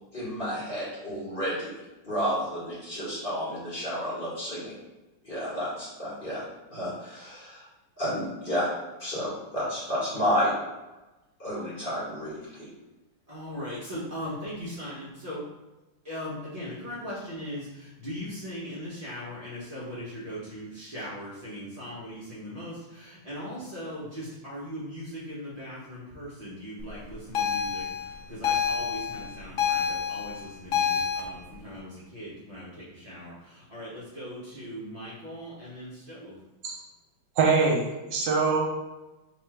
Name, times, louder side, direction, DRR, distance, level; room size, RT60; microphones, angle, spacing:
voice 1, 0.1-1.7 2.0-4.8 5.2-6.4 6.7-7.6 8.0-8.7 9.0-10.5 11.4-12.7, equal, 30° left, -9 dB, 1.7 m, -31 dB
voice 2, 13.3-15.4 16.0-36.3, equal, 40° right, -9 dB, 0.5 m, -39 dB
sound 1, 27.3-31.2, left 7 dB, 70° left, 0.7 m, -28 dB
voice 3, 37.4-38.6, right 4 dB, 75° right, -1 dB, 1.3 m, -23 dB
3.2 x 3.0 x 4.5 m, 1.1 s
omnidirectional pair, 2.2 m